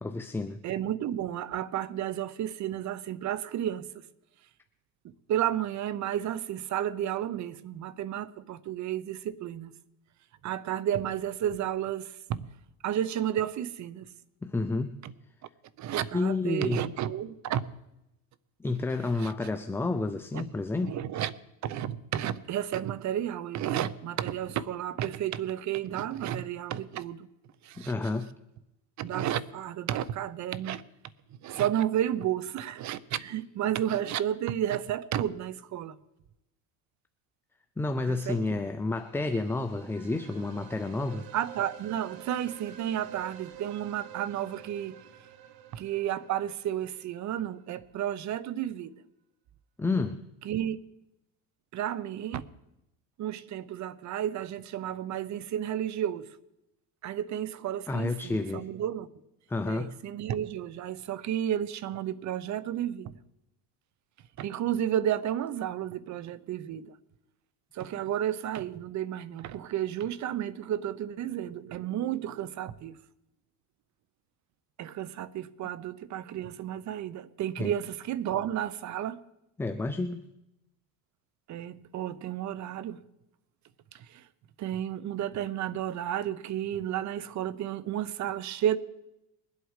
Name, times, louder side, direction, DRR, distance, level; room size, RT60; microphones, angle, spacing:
voice 1, 0.0-0.6 14.4-15.0 16.1-16.8 18.6-21.0 27.8-28.3 37.8-41.3 49.8-50.2 57.9-58.7 59.5-60.0 77.6-77.7 79.6-80.2, left 3 dB, 5° left, 0.4 m, -30 dB
voice 2, 0.6-3.9 5.3-9.7 10.4-12.5 12.8-14.1 15.0-15.1 15.8-17.6 19.2-19.3 20.3-20.4 20.8-21.3 21.6-27.3 27.6-27.9 29.0-30.8 31.4-36.0 38.1-38.6 41.3-45.0 45.7-49.0 50.4-50.8 51.7-52.5 53.2-56.2 57.0-59.1 59.7-63.1 64.4-67.0 67.7-73.0 74.8-79.2 81.5-83.0 83.9-84.2 84.6-88.8, right 11 dB, 45° right, 0.7 m, -32 dB
sound 1, 38.8-47.6, right 11 dB, 60° right, 1.2 m, -50 dB
21.5 x 8.1 x 4.8 m
supercardioid pair, 110°, 41 cm